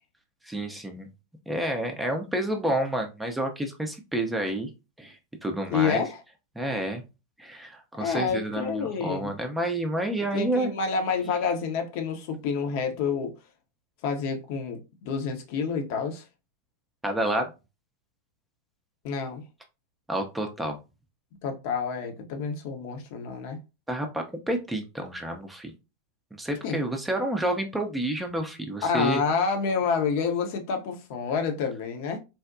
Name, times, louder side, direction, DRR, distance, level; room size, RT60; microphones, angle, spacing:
voice 1, 0.4-1.1 1.5-4.7 5.0-6.0 6.6-7.0 7.4-10.7 17.0-17.5 20.1-20.8 23.9-25.7 26.3-29.2, right 1 dB, 5° right, 0.5 m, -29 dB
voice 2, 5.7-6.2 8.0-9.3 10.3-13.3 14.0-16.2 19.0-19.4 21.4-23.6 26.6-26.8 28.8-32.2, left 5 dB, 45° left, 0.7 m, -28 dB
3.9 x 2.1 x 2.5 m
figure-of-eight pair, 90°, 0 cm